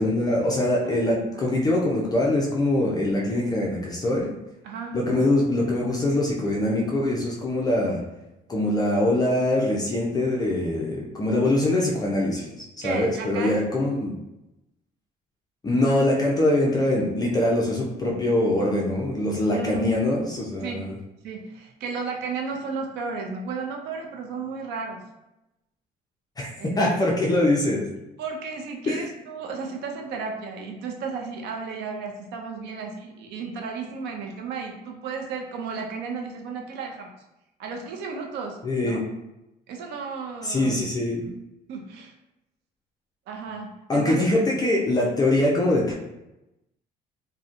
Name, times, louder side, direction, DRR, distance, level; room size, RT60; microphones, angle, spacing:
voice 1, 0.0-4.3 4.9-8.0 8.5-12.5 12.8-14.1 15.6-20.9 26.4-26.5 26.8-27.9 28.9-29.1 38.6-39.0 40.4-41.2 43.9-45.9, left 1 dB, 25° left, -3 dB, 0.4 m, -23 dB
voice 2, 4.6-5.0 12.8-13.6 19.5-19.9 20.6-20.9 21.2-25.0 26.6-27.1 28.2-37.1 37.6-39.0 39.7-41.3 41.7-42.1 43.3-44.2, right 5 dB, 85° right, 2 dB, 0.5 m, -34 dB
2.7 x 2.1 x 2.5 m, 0.93 s
cardioid pair, 110°, 17 cm